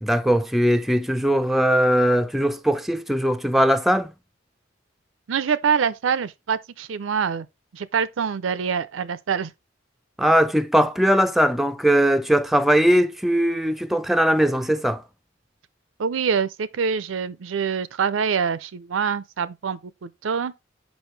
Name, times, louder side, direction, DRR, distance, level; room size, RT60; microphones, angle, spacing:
voice 1, 0.0-4.1 10.2-15.0, equal, ahead, 0.3 m, -20 dB
voice 2, 5.3-7.5 7.7-9.5 16.0-20.5, right 6 dB, 85° right, 0.5 m, -25 dB
6.2 x 5.3 x 3.2 m
head